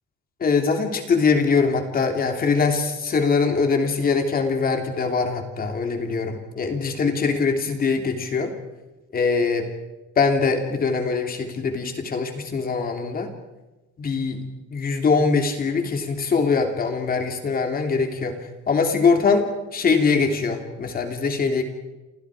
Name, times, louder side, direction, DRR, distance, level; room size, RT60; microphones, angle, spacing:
voice 1, 0.4-8.5 9.1-9.7 10.2-13.3 14.0-14.4 14.7-18.4 18.7-21.6, left 4 dB, 30° left, 5 dB, 3.0 m, -22 dB
28.5 x 28.5 x 4.9 m, 1.1 s
cardioid pair, 170°, 29 cm